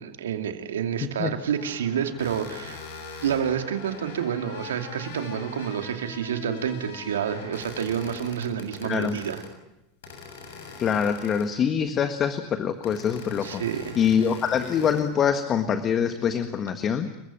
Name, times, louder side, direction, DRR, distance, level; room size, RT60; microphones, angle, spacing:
voice 1, 0.0-2.8 3.2-9.4 13.4-14.0, right 8 dB, 85° right, 6 dB, 2.5 m, -29 dB
sound 1, 1.5-9.5 10.0-11.7 12.8-15.1, left 4 dB, 75° left, 7.0 m, -42 dB
voice 2, 8.8-9.2 10.8-13.6 14.0-17.1, left 7 dB, 35° left, 8 dB, 1.6 m, -24 dB
29.5 x 15.0 x 8.9 m, 0.91 s
hypercardioid pair, 100°, 0 cm